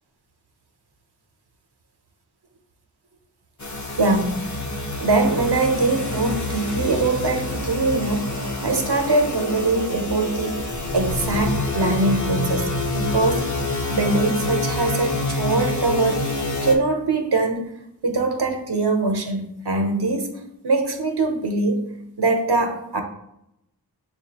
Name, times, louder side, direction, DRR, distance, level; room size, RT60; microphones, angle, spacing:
sound 1, 3.6-16.8, left 2 dB, 45° left, 0.6 m, -27 dB
voice 1, 4.0-4.4 5.0-8.3 8.6-10.6 10.9-13.5 13.9-16.3 16.6-17.7 18.0-20.3 20.6-21.9 22.2-23.0, right 3 dB, 70° right, 4 dB, 0.7 m, -22 dB
6.4 x 2.3 x 2.9 m, 0.81 s
wide cardioid pair, 55°, 40 cm